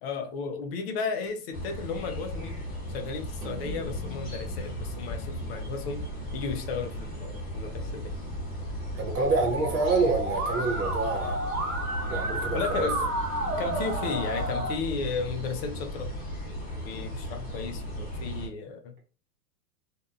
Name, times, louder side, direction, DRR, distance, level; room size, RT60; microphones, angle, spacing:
voice 1, 0.0-2.6 2.9-6.1 6.3-8.1 12.5-13.0 13.6-16.1 16.8-18.9, left 5 dB, 40° left, 5 dB, 0.5 m, -34 dB
sound 1, 1.5-18.5, equal, 20° left, 1.1 m, -36 dB
sound 2, 3.4-7.9, left 2 dB, 85° right, 0.9 m, -44 dB
voice 2, 8.9-11.4 12.1-12.9, right 3 dB, 25° right, 1 dB, 0.4 m, -27 dB
Musical instrument, 9.2-14.7, right 1 dB, 60° right, 1.2 m, -31 dB
2.6 x 2.2 x 2.4 m, 0.36 s
hypercardioid pair, 135°, 47 cm